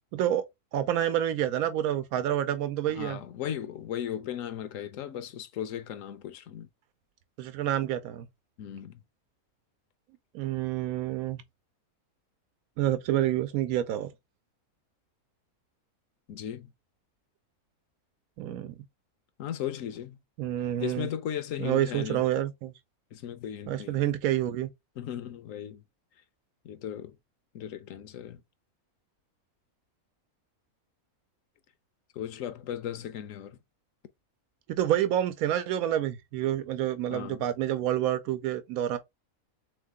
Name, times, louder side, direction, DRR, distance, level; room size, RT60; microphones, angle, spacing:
voice 1, 0.1-0.4 0.7-3.2 7.4-8.3 10.3-11.4 12.8-14.1 18.4-18.7 20.4-21.1 21.6-22.7 23.7-24.7 34.8-39.0, right 12 dB, 80° right, 1.0 m, -28 dB
voice 2, 2.9-6.7 8.6-9.0 16.3-16.7 19.4-20.2 20.8-22.2 23.1-24.0 25.0-25.8 26.6-27.2 27.5-28.4 32.1-33.6 37.1-37.4, left 10 dB, 70° left, 0.9 m, -36 dB
3.6 x 3.3 x 3.6 m
omnidirectional pair, 1.5 m